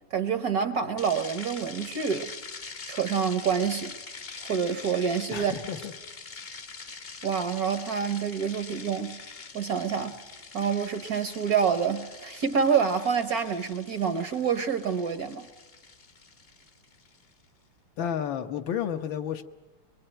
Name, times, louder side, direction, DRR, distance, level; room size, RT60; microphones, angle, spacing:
voice 1, 0.1-2.3 2.9-3.9 4.4-5.5 7.2-9.2 9.5-10.2 10.5-15.5, right 6 dB, 55° right, 1.2 m, -27 dB
sound 1, 1.0-17.3, left 4 dB, 35° left, 1.0 m, -44 dB
voice 2, 5.3-5.9 18.0-19.4, left 8 dB, 65° left, 1.7 m, -31 dB
23.0 x 23.0 x 9.0 m
omnidirectional pair, 2.4 m